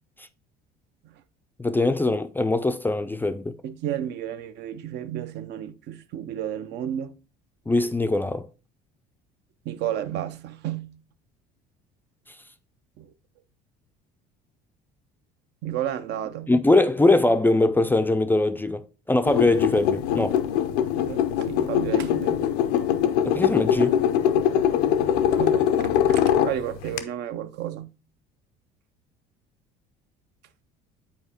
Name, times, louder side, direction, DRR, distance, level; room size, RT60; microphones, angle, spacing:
voice 1, 1.6-3.6 7.7-8.5 16.5-20.4 23.2-24.0, left 2 dB, 10° left, 0.3 m, -22 dB
voice 2, 3.6-7.1 9.7-11.0 13.0-13.1 15.6-16.5 20.9-22.5 25.0-27.9, right 11 dB, 60° right, 0.5 m, -32 dB
sound 1, 19.2-27.0, left 9 dB, 85° left, 0.5 m, -22 dB
8.0 x 4.3 x 2.8 m
supercardioid pair, 80°, 20 cm